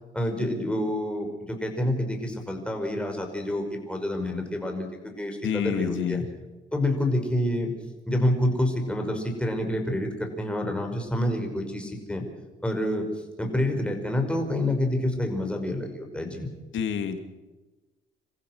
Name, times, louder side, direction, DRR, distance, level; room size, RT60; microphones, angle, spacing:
voice 1, 0.1-4.9 5.2-6.2 6.7-7.7 8.1-12.3 12.6-13.1 13.4-16.5, left 1 dB, 5° left, 3 dB, 5.5 m, -28 dB
voice 2, 5.4-6.2 16.7-17.2, left 8 dB, 75° left, 7 dB, 2.6 m, -28 dB
27.0 x 15.0 x 6.5 m, 1.2 s
cardioid pair, 90°, 20 cm